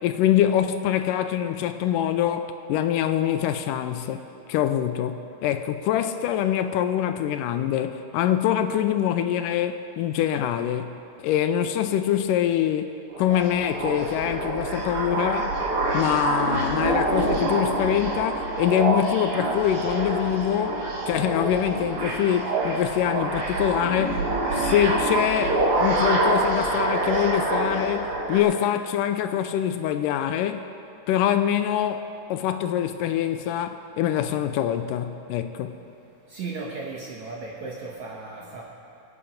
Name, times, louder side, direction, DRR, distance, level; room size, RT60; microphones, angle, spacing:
voice 1, 0.0-4.2 4.5-15.5 15.9-20.8 21.1-30.6 31.1-35.7, left 10 dB, 80° left, 9 dB, 2.0 m, -24 dB
sound 1, 13.1-28.4, right 2 dB, 45° right, 2.1 m, -26 dB
voice 2, 36.3-38.7, right 3 dB, 65° right, -2 dB, 2.1 m, -36 dB
23.5 x 8.6 x 5.1 m, 2.6 s
omnidirectional pair, 4.1 m